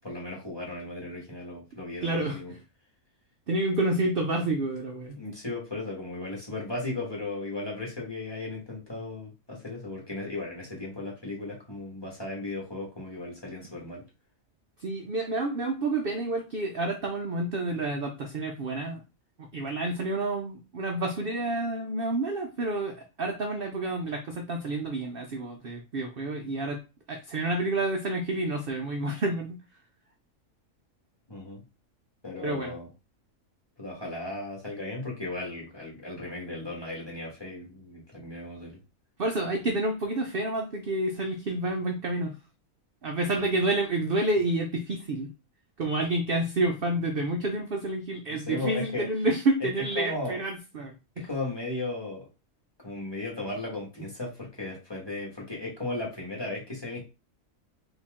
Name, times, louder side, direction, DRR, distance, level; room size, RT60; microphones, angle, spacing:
voice 1, 0.0-2.5 5.2-14.0 31.3-31.6 32.2-32.9 33.8-38.8 43.4-43.5 48.3-49.1 49.9-50.4 51.2-52.3 52.8-57.0, left 2 dB, 20° left, -3 dB, 1.7 m, -36 dB
voice 2, 2.0-2.6 3.5-5.2 14.8-19.0 19.5-26.8 27.1-29.6 32.4-32.7 39.2-42.4 43.0-45.3 45.8-51.3, right 2 dB, 55° right, 3 dB, 0.7 m, -29 dB
4.3 x 2.9 x 3.6 m, 0.29 s
omnidirectional pair, 1.5 m